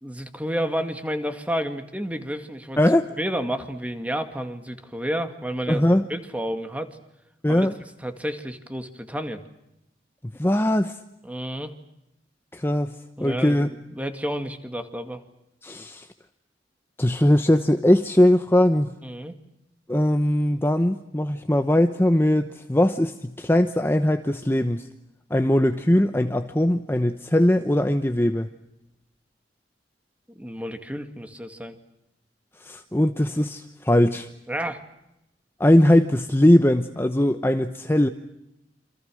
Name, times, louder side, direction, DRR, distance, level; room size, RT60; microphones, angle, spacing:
voice 1, 0.0-2.8 3.2-5.8 6.1-6.9 7.5-7.7 8.0-9.4 11.2-11.7 13.2-15.2 19.0-19.3 30.3-31.8 34.5-34.8, equal, 10° right, 7 dB, 2.1 m, -30 dB
voice 2, 2.8-3.1 5.7-6.1 7.4-7.7 10.4-11.0 12.5-12.9 13.2-13.7 15.6-16.1 17.0-18.9 19.9-24.9 25.3-28.5 32.6-34.3 35.6-38.1, left 1 dB, 15° left, 7 dB, 0.9 m, -20 dB
28.0 x 27.0 x 6.4 m, 0.86 s
head